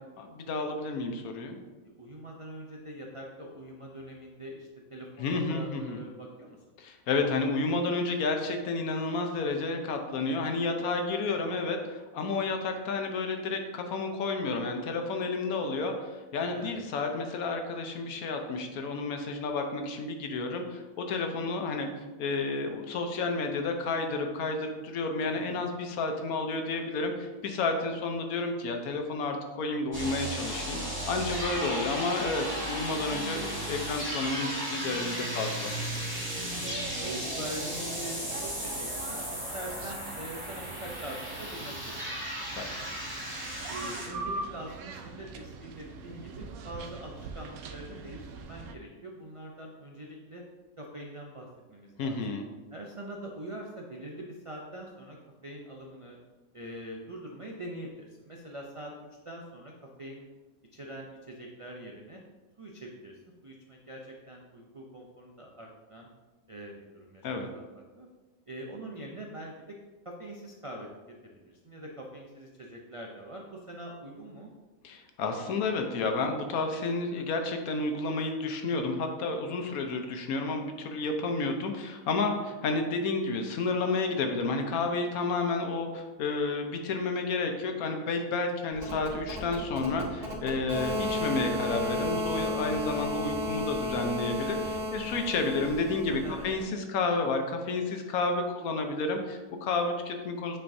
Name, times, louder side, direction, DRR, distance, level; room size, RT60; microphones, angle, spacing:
voice 1, 0.2-1.6 5.2-6.0 6.8-21.9 22.2-30.8 31.1-35.7 42.4-42.7 52.0-52.5 67.2-67.5 74.8-100.6, left 3 dB, 85° left, 4 dB, 1.2 m, -31 dB
voice 2, 1.9-6.6 11.5-11.7 16.5-16.8 25.2-25.8 36.4-36.7 37.0-42.0 43.7-50.4 50.8-52.4 52.7-55.2 55.4-56.2 56.5-58.9 59.2-59.7 60.0-60.3 60.7-62.2 62.6-66.1 66.5-68.1 68.5-69.8 70.0-74.5 96.2-96.5, right 1 dB, 60° right, -1 dB, 0.3 m, -43 dB
sound 1, 29.9-44.1, equal, 10° right, 1.7 m, -35 dB
sound 2, 35.7-48.8, right 4 dB, 80° right, 1.0 m, -43 dB
sound 3, 88.7-96.6, left 1 dB, 30° right, 1.4 m, -34 dB
8.7 x 4.4 x 2.6 m, 1.2 s
omnidirectional pair, 1.5 m